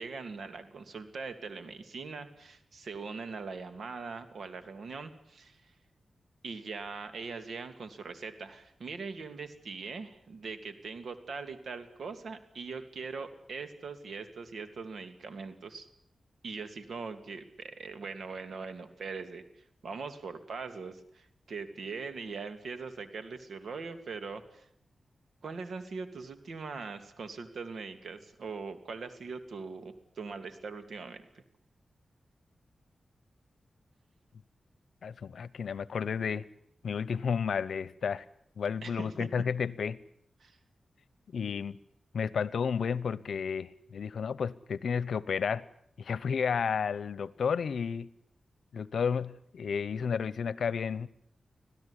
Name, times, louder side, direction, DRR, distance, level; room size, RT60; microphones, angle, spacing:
voice 1, 0.0-5.7 6.4-15.9 16.4-24.7 25.4-31.4 38.8-39.3 40.4-40.6, right 4 dB, 75° right, 2.7 m, -41 dB
voice 2, 35.0-36.5 36.8-38.2 38.6-40.0 41.3-41.8 42.1-45.6 46.0-48.1 48.7-51.1, left 6 dB, 85° left, 0.9 m, -32 dB
26.0 x 16.5 x 9.9 m
wide cardioid pair, 140°, 0 cm